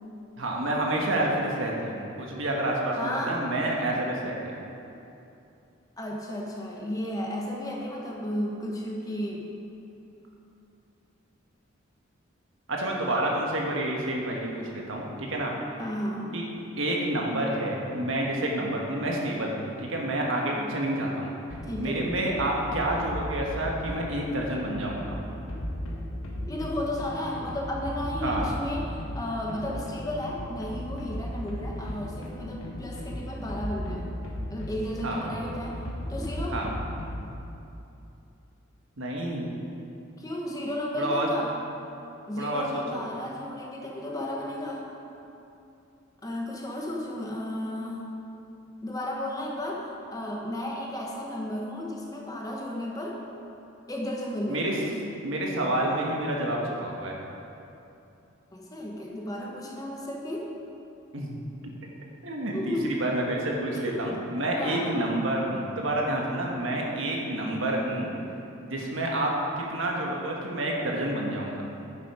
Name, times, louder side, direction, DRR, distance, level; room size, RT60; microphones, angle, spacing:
voice 1, 0.4-4.5 12.7-15.5 16.3-16.4 16.8-21.3 21.8-25.2 28.2-28.6 35.0-35.3 36.5-36.7 39.0-39.4 40.9-41.3 42.4-43.1 54.5-54.7 55.2-57.2 61.1-61.7 62.2-68.1 68.6-71.7, right 1 dB, 75° right, -1 dB, 1.5 m, -29 dB
voice 2, 2.9-3.4 6.0-9.5 15.8-16.3 20.6-20.7 21.7-22.3 26.5-34.0 34.5-35.8 36.1-36.6 40.2-41.5 42.3-44.9 46.2-48.1 48.8-49.8 50.1-53.2 53.9-54.8 58.5-60.5 62.5-62.9 63.7-64.1 64.5-65.2, left 1 dB, 15° left, -2 dB, 1.2 m, -33 dB
sound 1, 21.5-37.4, equal, 85° left, 1.6 m, -36 dB
10.0 x 7.5 x 4.9 m, 2.8 s
head